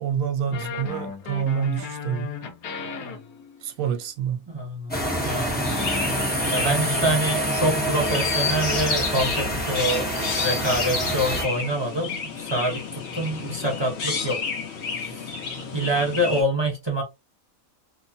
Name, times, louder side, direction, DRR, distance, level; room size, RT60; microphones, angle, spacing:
voice 1, 0.0-2.3 3.6-4.4, right 8 dB, 75° right, 1.0 m, -27 dB
sound 1, 0.5-3.9 5.6-7.2, left 5 dB, 85° left, 1.2 m, -35 dB
voice 2, 4.5-5.0 5.2-5.8 6.5-14.4 15.0-15.3 15.7-17.0, right 1 dB, 40° right, 0.4 m, -26 dB
sound 2, 4.9-11.4, right 1 dB, 10° left, 0.6 m, -27 dB
Chirp tweet, 5.6-16.4, left 5 dB, 55° left, 1.0 m, -30 dB
3.0 x 2.1 x 2.5 m
omnidirectional pair, 1.5 m